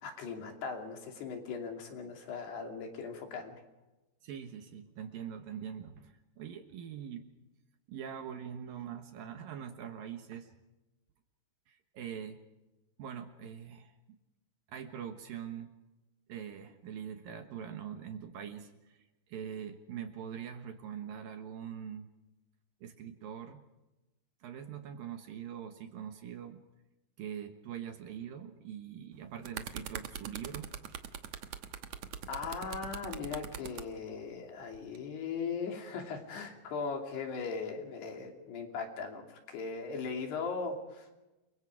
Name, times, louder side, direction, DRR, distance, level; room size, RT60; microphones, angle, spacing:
voice 1, 0.0-3.6 32.3-41.1, left 5 dB, 70° left, 3 dB, 4.8 m, -39 dB
voice 2, 4.2-7.3 7.9-10.5 11.7-12.4 13.0-13.9 14.7-15.7 16.3-22.1 22.8-23.6 24.4-26.6 27.2-30.7, right 8 dB, 65° right, 7 dB, 2.7 m, -43 dB
sound 1, 29.1-33.9 34.7-35.0, right 9 dB, 85° right, 1.5 m, -42 dB
29.0 x 23.0 x 4.9 m, 1.0 s
omnidirectional pair, 5.0 m